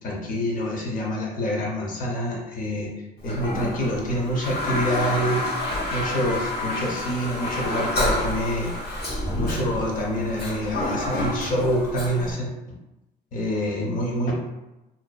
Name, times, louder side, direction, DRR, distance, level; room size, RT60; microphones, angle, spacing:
voice 1, 0.0-2.9 3.2-5.5 5.9-8.8 9.3-12.8 13.3-14.3, equal, 55° left, -2 dB, 0.7 m, -26 dB
Toilet flush, 3.2-12.3, left 1 dB, 75° left, 1.1 m, -29 dB
2.6 x 2.1 x 2.2 m, 0.98 s
cardioid pair, 110°, 17 cm